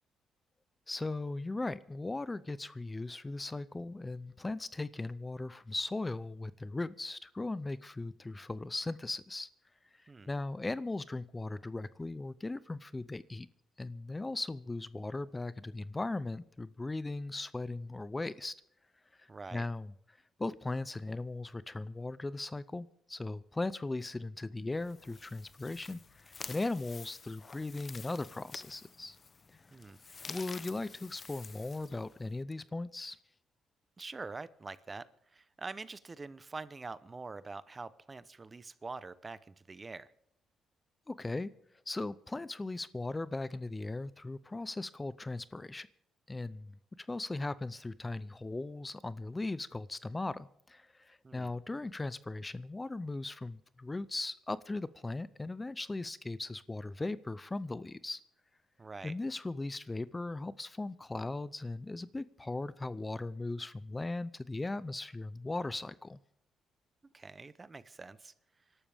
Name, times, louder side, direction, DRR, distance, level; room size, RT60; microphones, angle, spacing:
voice 1, 0.9-9.5 9.9-13.5 13.8-18.5 19.2-19.9 20.4-29.2 30.3-33.2 41.1-41.5 41.9-45.9 46.3-58.2 59.0-66.2, left 2 dB, 20° left, 17 dB, 0.5 m, -38 dB
voice 2, 19.3-19.6 29.7-30.0 34.0-40.1 51.2-51.5 58.8-59.1 67.1-68.3, right 3 dB, 25° right, 16 dB, 0.8 m, -45 dB
sound 1, 24.7-32.4, left 4 dB, 35° left, 0.9 m, -50 dB
26.0 x 12.5 x 3.5 m, 0.76 s
cardioid pair, 90°, 0 cm